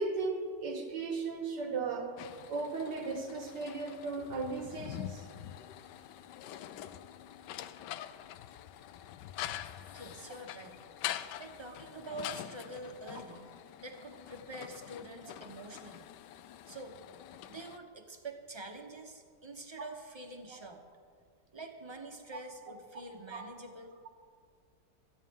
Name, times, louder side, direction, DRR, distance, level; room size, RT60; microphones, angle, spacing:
voice 1, 0.0-2.1 2.5-5.3 13.1-13.2 23.3-23.4, right 4 dB, 85° right, 3 dB, 2.1 m, -36 dB
sound 1, 2.2-17.8, left 12 dB, 90° left, 1.2 m, -45 dB
voice 2, 9.9-10.8 11.4-13.5 13.8-16.1 16.7-17.0 17.5-20.8 21.5-23.9, right 2 dB, 20° right, 4 dB, 0.8 m, -46 dB
25.0 x 9.2 x 3.7 m, 2.1 s
omnidirectional pair, 1.8 m